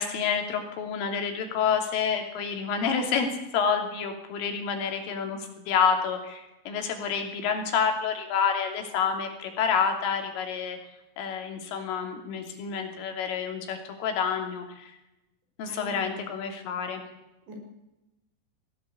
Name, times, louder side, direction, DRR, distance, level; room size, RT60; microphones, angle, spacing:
voice 1, 0.0-3.3 3.5-10.8 11.2-15.0 15.6-17.0, left 6 dB, 85° left, 4 dB, 5.5 m, -28 dB
voice 2, 15.7-16.4 17.5-17.6, left 1 dB, 70° right, 2 dB, 8.4 m, -42 dB
21.0 x 16.5 x 8.5 m, 0.94 s
omnidirectional pair, 5.6 m